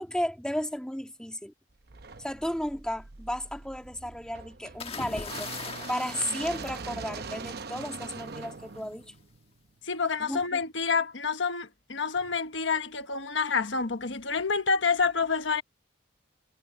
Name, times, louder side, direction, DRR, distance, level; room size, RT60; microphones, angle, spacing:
voice 1, 0.0-1.5 2.2-5.5 5.9-9.1 10.2-10.6, equal, 5° left, 1.9 m, -34 dB
sound 1, 1.9-9.9, right 4 dB, 55° right, 0.8 m, -42 dB
sound 2, 4.8-7.6 8.8-9.1, left 4 dB, 30° left, 1.5 m, -40 dB
voice 2, 9.8-15.6, left 5 dB, 70° left, 1.3 m, -28 dB
head